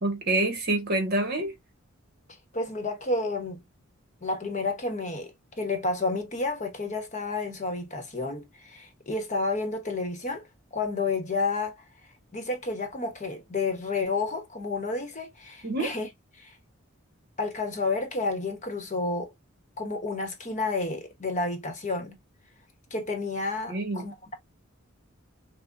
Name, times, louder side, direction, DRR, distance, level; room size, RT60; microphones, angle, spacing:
voice 1, 0.0-1.5 15.6-15.9 23.7-24.1, right 2 dB, 50° right, 1.3 m, -27 dB
voice 2, 2.5-3.6 4.2-10.5 10.7-11.7 12.3-16.1 16.4-16.6 17.4-19.3 19.8-22.2 22.9-24.3, left 3 dB, 35° left, 1.0 m, -30 dB
5.9 x 2.2 x 2.5 m
head